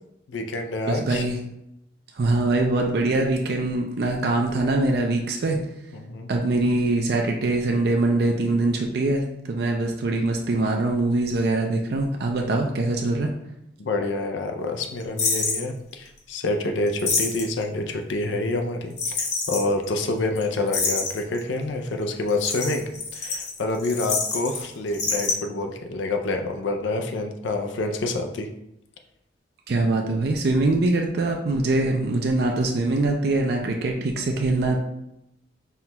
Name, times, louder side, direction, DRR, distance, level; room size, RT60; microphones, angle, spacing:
voice 1, 0.3-1.2 5.9-6.3 13.8-18.9 19.2-28.5, left 2 dB, 85° left, 4 dB, 0.4 m, -27 dB
voice 2, 0.9-1.4 2.1-5.6 6.3-13.3 29.7-34.8, right 2 dB, 60° right, 2 dB, 0.4 m, -23 dB
sound 1, 15.2-15.6 16.9-17.6 19.0-19.6 20.0-20.1 20.4-20.5 20.7-21.4 22.3-24.6 24.9-25.3, left 4 dB, 40° left, 0.7 m, -26 dB
5.6 x 2.2 x 2.9 m, 0.84 s
head